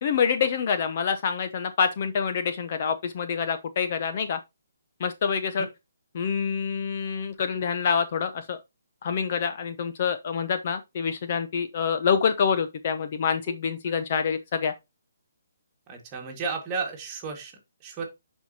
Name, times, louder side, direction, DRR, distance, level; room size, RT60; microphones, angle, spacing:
voice 1, 0.0-4.4 5.0-5.7 6.1-8.6 9.0-14.7, left 6 dB, 35° left, 0.6 m, -26 dB
voice 2, 15.9-18.0, right 4 dB, 15° right, 1.8 m, -33 dB
10.5 x 4.5 x 2.8 m
hypercardioid pair, 170°, 0 cm